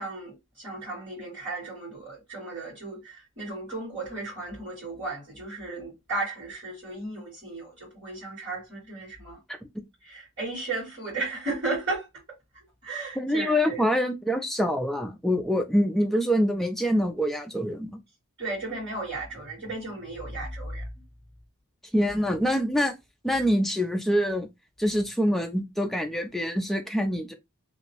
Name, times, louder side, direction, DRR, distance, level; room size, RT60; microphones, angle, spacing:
voice 1, 0.0-9.4 10.0-12.1 12.8-13.9 18.4-20.8, right 2 dB, 55° right, 1.4 m, -35 dB
voice 2, 13.2-18.0 21.9-22.9 23.2-24.5 24.8-27.3, equal, ahead, 0.3 m, -25 dB
2.6 x 2.0 x 2.8 m
head